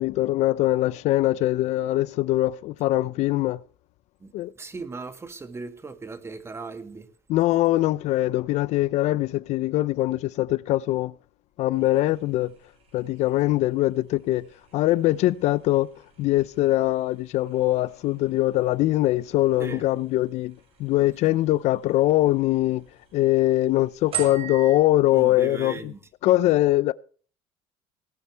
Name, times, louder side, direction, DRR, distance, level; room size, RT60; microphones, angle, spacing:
voice 1, 0.0-3.6 4.3-4.5 7.3-11.1 11.6-12.5 12.9-14.5 14.7-15.9 16.2-20.5 20.8-22.8 23.1-25.9 26.2-26.9, left 16 dB, 65° left, 0.5 m, -22 dB
voice 2, 4.2-7.1 19.6-19.8 25.1-26.0, right 4 dB, 20° right, 2.0 m, -37 dB
sound 1, 11.7-24.8, right 11 dB, 50° right, 6.2 m, -43 dB
19.0 x 10.0 x 3.4 m
supercardioid pair, 100°, 12 cm